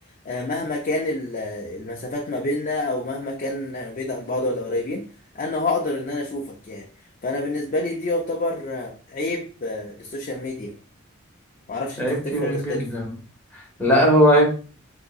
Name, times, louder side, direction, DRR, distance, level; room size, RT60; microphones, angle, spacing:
voice 1, 0.2-5.1 5.3-6.9 7.2-10.7 11.7-12.8, left 2 dB, 40° left, -1 dB, 0.5 m, -28 dB
voice 2, 12.0-13.1 13.5-14.5, equal, 10° left, -3 dB, 1.2 m, -19 dB
3.6 x 2.8 x 2.3 m, 0.38 s
head